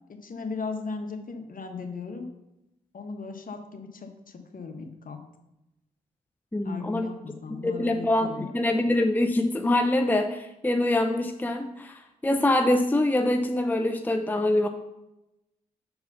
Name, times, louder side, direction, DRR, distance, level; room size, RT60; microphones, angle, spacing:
voice 1, 0.1-2.3 2.9-5.2 6.6-8.5, left 4 dB, 45° left, 5 dB, 1.3 m, -37 dB
voice 2, 6.5-7.1 7.6-14.7, left 1 dB, 10° left, 5 dB, 0.6 m, -24 dB
6.9 x 4.7 x 5.6 m, 0.92 s
hypercardioid pair, 40°, 20 cm